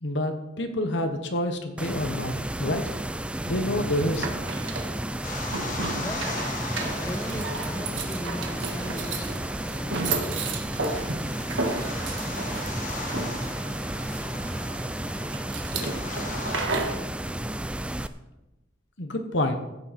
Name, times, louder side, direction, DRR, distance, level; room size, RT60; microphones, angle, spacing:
voice 1, 0.0-2.8 3.5-4.3 19.0-19.6, left 1 dB, 65° left, 6 dB, 1.1 m, -28 dB
sound 1, 1.8-18.1, right 1 dB, 5° right, 0.4 m, -32 dB
sound 2, 3.8-17.0, right 3 dB, 75° right, 1.6 m, -34 dB
sound 3, 5.2-16.7, left 3 dB, 45° left, 1.8 m, -40 dB
voice 2, 6.0-6.5 6.9-9.4 9.7-10.6, left 1 dB, 15° left, 3 dB, 1.5 m, -38 dB
15.0 x 8.6 x 4.3 m, 0.99 s
head